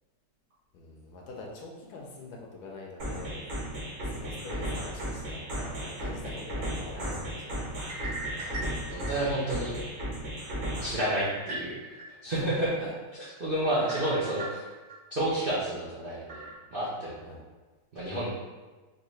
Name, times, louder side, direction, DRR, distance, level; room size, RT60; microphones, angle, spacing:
voice 1, 0.7-3.4 3.8-8.2 12.3-12.9 13.8-14.2 17.2-17.4, left 3 dB, 70° left, -1 dB, 1.0 m, -44 dB
sound 1, 3.0-11.0, right 1 dB, 45° right, 1.3 m, -35 dB
sound 2, 7.8-9.6 10.0-10.1 11.0-12.0 12.5-12.6 13.9-14.9 15.4-15.5 16.3-16.5, right 2 dB, 65° right, 2.0 m, -39 dB
voice 2, 8.9-9.8 10.8-11.9 12.2-12.7 13.4-14.6 15.1-17.2 17.9-18.3, right 1 dB, 90° right, -8 dB, 0.4 m, -30 dB
4.5 x 2.5 x 3.1 m, 1.3 s
omnidirectional pair, 2.1 m